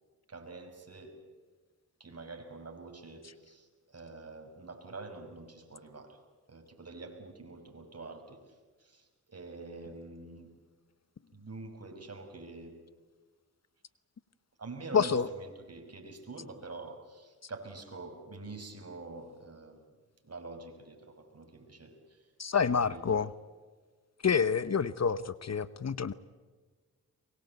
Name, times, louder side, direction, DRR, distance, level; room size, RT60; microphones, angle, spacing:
voice 1, 0.3-1.1 2.0-6.2 6.5-10.5 11.3-12.8 14.6-19.9 20.2-22.3 22.6-23.0, right 3 dB, 40° right, 5 dB, 6.0 m, -46 dB
voice 2, 14.9-15.3 22.4-23.3 24.2-26.1, left 6 dB, 45° left, 15 dB, 1.0 m, -28 dB
23.5 x 22.0 x 8.2 m, 1.4 s
cardioid pair, 50°, 36 cm